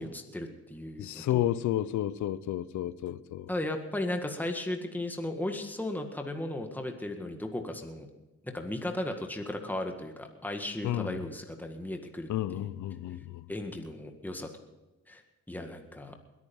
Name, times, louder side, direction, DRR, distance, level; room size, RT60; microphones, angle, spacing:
voice 1, 0.0-1.5 3.5-8.1 8.4-12.3 13.5-14.5 15.1-15.2 15.5-16.2, left 1 dB, 5° left, 1.8 m, -36 dB
voice 2, 1.0-3.5 10.8-11.3 12.3-13.5, left 12 dB, 70° left, 0.7 m, -31 dB
21.0 x 9.7 x 5.5 m
cardioid pair, 90°, 30 cm